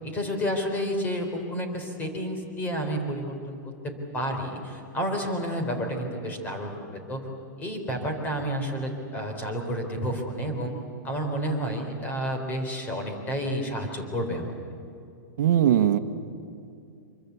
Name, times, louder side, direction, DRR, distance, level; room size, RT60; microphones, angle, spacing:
voice 1, 0.0-3.6 3.8-7.3 7.6-10.7 11.0-14.6, equal, 15° left, 4 dB, 3.8 m, -30 dB
voice 2, 15.4-16.0, right 10 dB, 65° right, 9 dB, 1.2 m, -20 dB
25.5 x 23.0 x 8.3 m, 2.6 s
hypercardioid pair, 155°, 10 cm